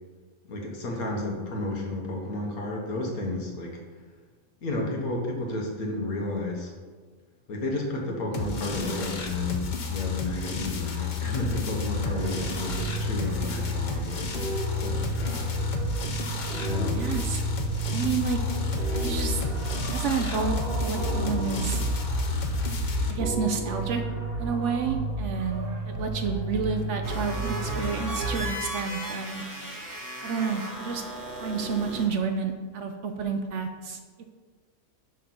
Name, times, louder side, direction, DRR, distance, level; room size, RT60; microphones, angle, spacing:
voice 1, 0.5-3.8 4.6-6.7 7.5-15.5 16.4-17.0, left 2 dB, 80° left, 0 dB, 1.7 m, -32 dB
sound 1, 8.3-23.1, left 6 dB, 50° left, 0.6 m, -32 dB
sound 2, 11.9-28.4, right 2 dB, 45° right, 1.0 m, -31 dB
voice 2, 16.9-17.4 17.9-18.4 18.9-19.4 19.9-20.6 20.8-21.8 23.1-24.0 24.4-29.4 30.2-31.0 31.4-34.2, right 5 dB, 65° right, 6 dB, 0.8 m, -30 dB
sound 3, 27.0-32.1, right 1 dB, 15° right, 1.0 m, -36 dB
6.1 x 3.9 x 5.9 m, 1.5 s
omnidirectional pair, 1.5 m